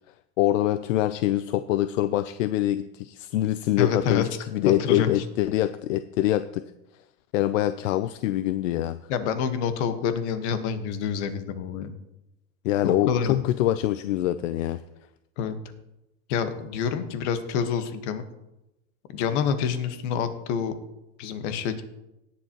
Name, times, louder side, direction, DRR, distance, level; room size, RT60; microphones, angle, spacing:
voice 1, 0.4-6.6 7.3-9.0 12.6-14.8, left 14 dB, 85° left, 13 dB, 0.5 m, -24 dB
voice 2, 3.8-4.4 4.8-5.2 9.1-11.9 12.8-13.3 15.4-15.6 16.3-18.2 19.1-20.7 21.2-21.8, left 7 dB, 65° left, 9 dB, 1.4 m, -27 dB
18.0 x 7.3 x 3.0 m, 0.91 s
supercardioid pair, 120°, 38 cm